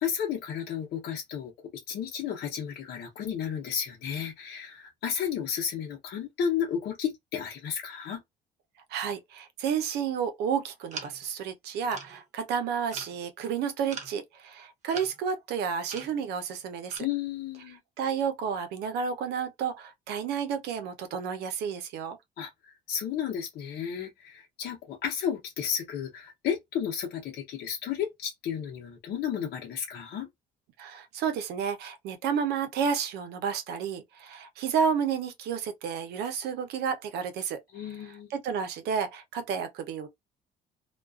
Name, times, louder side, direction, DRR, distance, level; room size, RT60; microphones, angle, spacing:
voice 1, 0.0-8.2 17.0-17.8 22.4-30.3 37.7-38.3, left 8 dB, 65° left, 0.7 m, -33 dB
voice 2, 8.9-17.0 18.0-22.2 30.8-37.6 38.1-40.1, right 7 dB, 80° right, 0.6 m, -31 dB
sound 1, 10.9-11.3 11.9-12.2 12.9-13.2 13.9-14.1 14.9-15.2 15.9-16.2 16.9-17.0, right 5 dB, 45° right, 0.9 m, -41 dB
2.3 x 2.3 x 2.3 m
cardioid pair, 110°, 17 cm